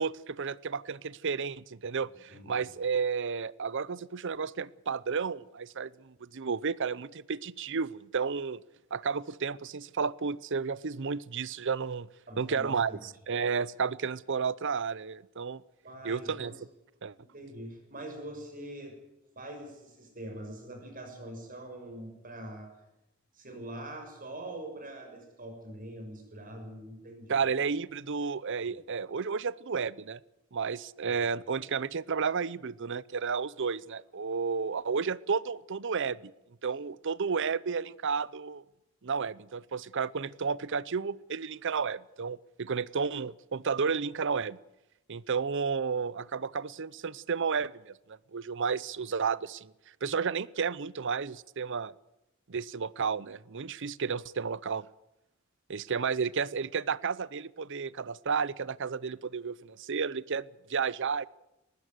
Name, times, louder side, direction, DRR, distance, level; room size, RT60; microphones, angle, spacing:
voice 1, 0.0-8.6 8.9-12.1 12.4-15.6 16.0-16.5 17.0-17.1 27.3-30.2 30.5-36.3 36.6-38.6 39.0-44.6 45.1-47.9 48.3-49.7 50.0-51.9 52.5-54.9 55.7-61.3, right 5 dB, 60° right, 20 dB, 0.7 m, -32 dB
voice 2, 2.3-2.7 12.3-13.0 15.8-16.5 17.2-19.0 19.3-22.7 23.3-27.4 28.6-28.7 31.1-31.2, right 1 dB, 45° right, 5 dB, 6.6 m, -43 dB
20.0 x 16.5 x 8.0 m, 0.93 s
head